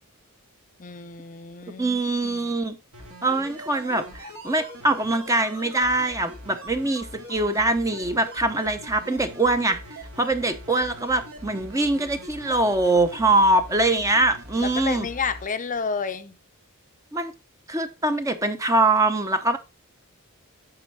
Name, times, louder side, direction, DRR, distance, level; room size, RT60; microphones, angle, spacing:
voice 1, 0.8-2.5 14.6-16.4, left 5 dB, 35° left, 0.6 m, -31 dB
voice 2, 1.8-2.8 3.2-9.8 10.2-15.1 17.1-17.3 17.7-19.6, right 2 dB, 15° right, 0.7 m, -23 dB
sound 1, 2.9-15.5 15.8-15.9, equal, 65° right, 2.8 m, -42 dB
8.8 x 5.5 x 4.0 m
head